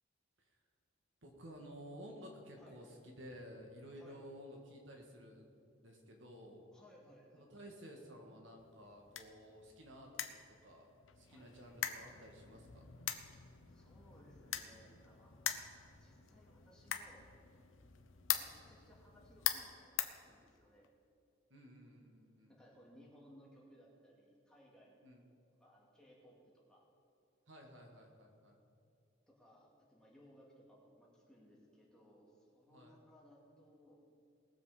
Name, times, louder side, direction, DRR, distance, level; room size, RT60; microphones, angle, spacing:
voice 1, 1.2-5.5 5.8-6.7 7.3-10.3 10.6-12.8 21.5-22.6 25.0-25.3 27.5-28.6 32.7-33.0, equal, 70° right, 1 dB, 1.9 m, -54 dB
voice 2, 6.7-7.5 11.3-11.5 13.7-15.5 16.0-17.3 18.3-20.9 22.5-25.0 25.6-26.8 29.3-34.0, equal, 5° left, -4 dB, 2.5 m, -63 dB
sound 1, 8.6-20.9, left 10 dB, 75° left, 0.8 m, -44 dB
19.5 x 7.3 x 5.1 m, 2.5 s
head